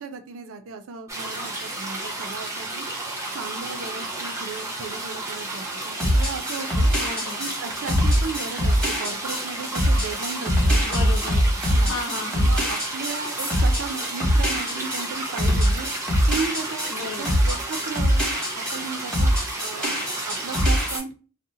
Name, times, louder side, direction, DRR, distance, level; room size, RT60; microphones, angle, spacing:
voice 1, 0.0-2.9 3.3-6.9 7.4-10.8 11.7-15.9 16.3-19.3 19.6-19.9 20.2-21.1, right 5 dB, 65° right, 0.4 m, -35 dB
sound 1, 1.1-21.0, right 2 dB, 15° right, 0.5 m, -32 dB
sound 2, 6.0-18.8 19.1-21.0, equal, 5° left, 0.9 m, -22 dB
voice 2, 7.0-7.4 10.8-12.8 16.9-17.5, left 3 dB, 70° left, 0.6 m, -35 dB
2.7 x 2.1 x 2.6 m
head